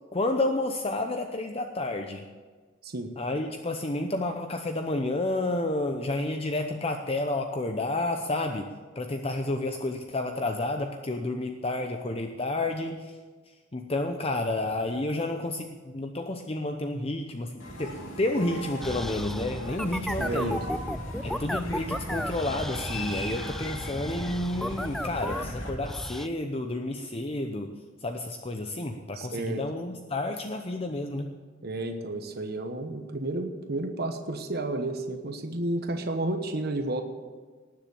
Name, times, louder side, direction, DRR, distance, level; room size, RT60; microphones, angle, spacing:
voice 1, 0.1-2.3 3.2-8.7 9.0-13.2 13.5-20.6 21.2-27.7 28.0-31.4, left 2 dB, 30° left, 5 dB, 0.7 m, -30 dB
sound 1, 17.6-25.7, left 1 dB, 70° left, 2.9 m, -40 dB
sound 2, 18.8-26.3, equal, ahead, 0.4 m, -34 dB
voice 2, 20.2-20.5 29.2-29.6 31.6-37.0, right 2 dB, 50° right, 5 dB, 1.1 m, -31 dB
19.0 x 7.3 x 7.0 m, 1.4 s
head